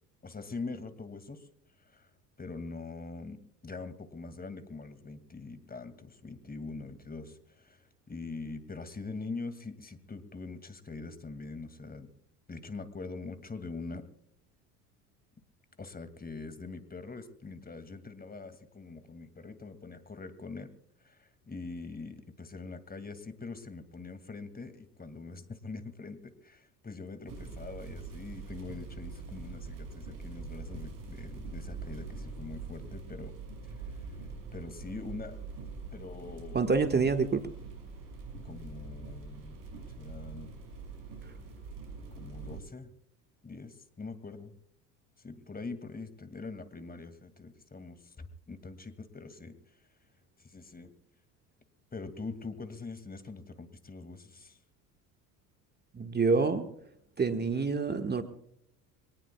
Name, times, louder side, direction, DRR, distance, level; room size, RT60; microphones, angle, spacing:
voice 1, 0.2-1.5 1.8-2.1 2.4-12.1 12.5-14.0 15.8-20.7 21.0-33.3 33.9-34.2 34.5-35.4 35.9-36.6 38.4-39.6 40.0-40.6 42.2-42.9 43.4-44.5 45.2-49.6 50.4-50.9 51.9-54.6, left 3 dB, 20° left, 11 dB, 2.3 m, -43 dB
sound 1, 27.3-42.6, right 4 dB, 65° right, 6.2 m, -43 dB
voice 2, 36.5-37.5 55.9-56.7 57.2-58.2, right 4 dB, 20° right, 7 dB, 1.6 m, -27 dB
25.5 x 19.0 x 2.3 m, 0.72 s
hypercardioid pair, 70°, 45 cm